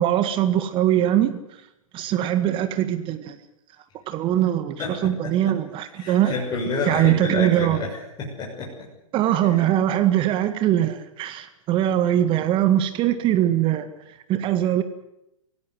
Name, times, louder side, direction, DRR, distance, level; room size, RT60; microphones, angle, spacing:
voice 1, 0.0-1.4 1.9-3.4 4.1-6.3 6.9-7.8 9.1-13.9 14.3-14.8, right 12 dB, 30° right, 10 dB, 1.8 m, -21 dB
voice 2, 4.8-5.5 6.0-8.7 9.4-9.6 9.9-10.0, left 3 dB, 25° left, -2 dB, 6.4 m, -30 dB
26.0 x 17.0 x 8.0 m, 0.86 s
figure-of-eight pair, 110°, 18 cm